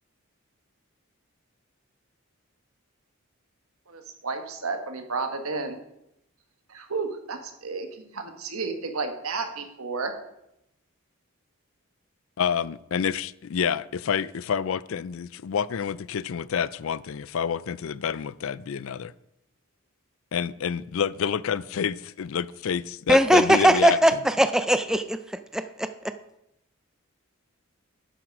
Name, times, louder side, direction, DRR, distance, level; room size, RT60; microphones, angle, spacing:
voice 1, 3.9-5.8 6.7-10.1, right 4 dB, 80° right, 6 dB, 1.5 m, -32 dB
voice 2, 12.4-19.1 20.3-24.2, left 7 dB, 65° left, 19 dB, 0.4 m, -28 dB
voice 3, 23.1-25.2 25.5-26.1, right 1 dB, 5° right, 10 dB, 0.3 m, -20 dB
9.5 x 7.6 x 6.1 m, 0.82 s
head